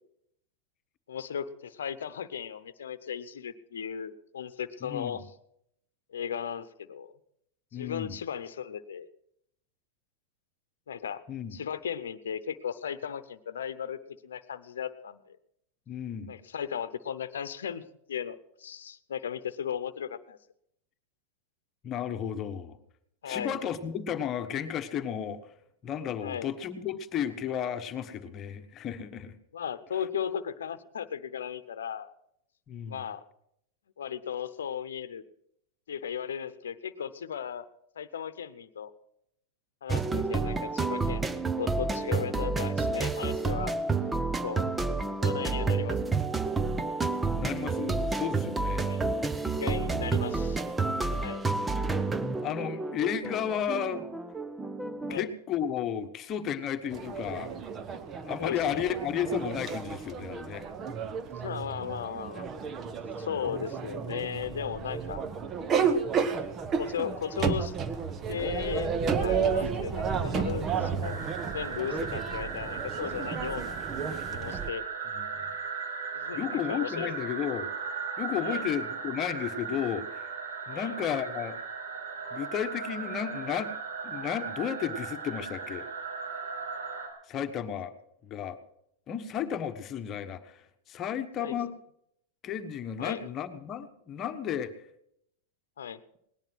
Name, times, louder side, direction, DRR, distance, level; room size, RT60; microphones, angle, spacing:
voice 1, 1.1-5.3 6.1-7.1 7.7-9.1 10.9-11.2 11.5-15.4 16.3-17.8 18.1-20.4 23.2-23.6 26.2-26.5 29.5-32.1 32.9-33.2 34.0-35.2 35.9-37.7 38.0-38.9 39.8-43.8 44.4-44.7 45.2-46.0 48.8-49.1 49.5-50.6 51.2-51.4 55.1-55.3 58.4-59.0 61.4-62.5 62.7-62.8 63.2-65.2 66.8-67.7 68.3-71.2 71.5-73.8 74.3-74.8 76.1-77.1 78.4-78.7 80.7-81.0 91.4-91.5 93.0-93.3 95.8-96.0, left 8 dB, 80° left, 13 dB, 0.9 m, -36 dB
voice 2, 4.8-5.2 7.7-8.2 11.3-11.5 15.9-16.4 21.8-22.8 23.2-25.4 25.8-29.3 32.7-33.0 47.4-48.9 51.1-51.3 52.4-54.1 55.1-57.5 58.2-60.7 75.1-75.5 76.3-77.7 78.2-80.3 80.7-81.6 82.3-83.7 84.0-85.9 87.3-87.9 88.2-88.6 89.1-90.6 90.9-91.7 92.4-94.7, left 9 dB, 35° left, 8 dB, 1.3 m, -33 dB
sound 1, 39.9-55.2, right 3 dB, 10° right, 0.8 m, -30 dB
sound 2, 56.9-74.7, right 6 dB, 30° right, 1.2 m, -32 dB
sound 3, 71.0-87.1, right 5 dB, 70° right, 5.4 m, -37 dB
19.0 x 10.5 x 6.2 m, 0.73 s
hypercardioid pair, 105°, 0 cm